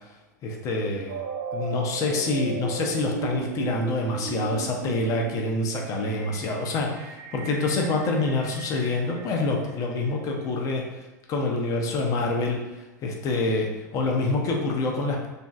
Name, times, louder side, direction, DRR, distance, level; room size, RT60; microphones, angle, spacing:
voice 1, 0.4-1.2 1.5-10.8 11.3-12.6 13.0-15.3, left 2 dB, 35° left, 1 dB, 0.6 m, -26 dB
sound 1, 1.1-10.0, right 5 dB, 55° right, 0.4 m, -37 dB
3.0 x 2.6 x 2.3 m, 1.1 s
figure-of-eight pair, 90°, 10 cm